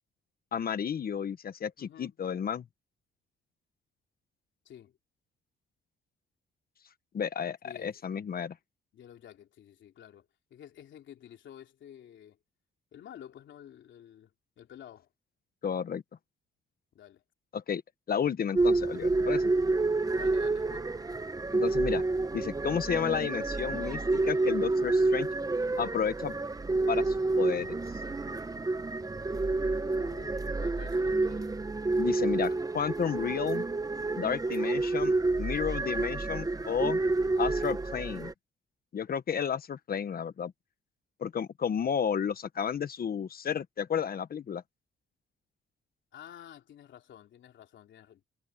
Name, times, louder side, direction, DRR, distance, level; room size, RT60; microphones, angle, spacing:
voice 1, 0.5-2.6 7.1-8.5 15.6-16.0 17.5-17.8 18.1-19.5 21.5-22.0 22.3-25.3 25.8-26.4 26.9-27.8 32.0-33.6 34.2-37.0 37.4-38.3 38.9-40.5 41.2-44.6, left 7 dB, 50° left, 1.3 m, -32 dB
voice 2, 1.8-2.2 4.6-5.0 7.6-8.0 8.9-12.4 12.9-15.1 16.9-17.2 20.1-21.0 29.8-31.6 34.3-34.5 46.1-48.2, left 10 dB, 70° left, 3.3 m, -51 dB
sound 1, 18.6-38.3, right 3 dB, 20° right, 1.0 m, -29 dB
cardioid pair, 90°, 20 cm